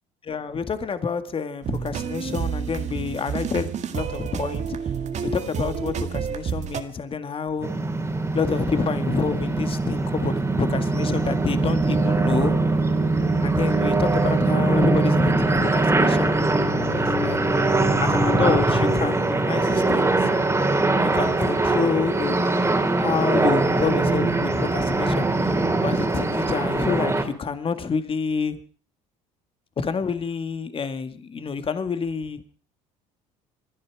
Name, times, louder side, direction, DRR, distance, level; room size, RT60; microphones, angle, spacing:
voice 1, 0.2-4.8 5.2-7.7 8.3-12.5 13.4-16.4 16.9-17.4 18.0-20.3 21.0-22.4 23.0-25.5 25.8-28.6 29.8-32.4, left 5 dB, 35° left, 10 dB, 2.1 m, -28 dB
sound 1, 1.6-6.8, right 7 dB, 45° right, 1.9 m, -29 dB
sound 2, 7.6-27.2, right 2 dB, 15° right, 3.3 m, -22 dB
26.0 x 11.0 x 4.9 m, 0.41 s
supercardioid pair, 85°, 16 cm